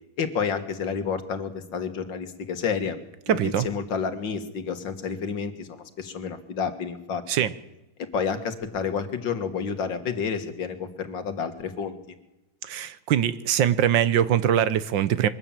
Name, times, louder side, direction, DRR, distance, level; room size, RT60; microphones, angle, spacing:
voice 1, 0.2-3.0 3.3-7.5 8.1-12.1, left 6 dB, 70° left, 8 dB, 2.4 m, -30 dB
voice 2, 3.3-3.7 7.3-7.5 12.6-15.3, right 10 dB, 75° right, 15 dB, 1.6 m, -22 dB
23.0 x 13.0 x 9.0 m, 0.95 s
omnidirectional pair, 2.1 m